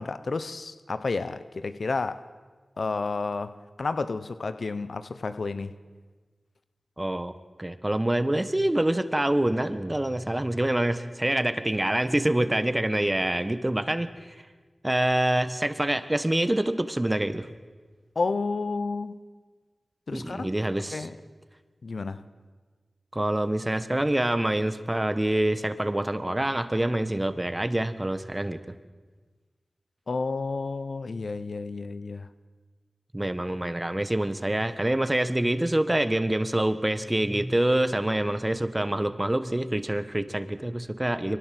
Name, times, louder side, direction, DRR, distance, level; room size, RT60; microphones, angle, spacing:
voice 1, 0.0-2.2 2.8-5.8 18.1-19.2 20.1-20.5 20.9-21.2 21.8-22.2 30.1-32.3, left 3 dB, 75° left, 0.9 m, -31 dB
voice 2, 7.0-7.3 7.6-14.1 14.8-17.5 20.1-21.1 23.1-28.6 33.1-41.4, right 1 dB, 20° right, 1.4 m, -26 dB
23.0 x 19.5 x 7.8 m
cardioid pair, 50°, 0 cm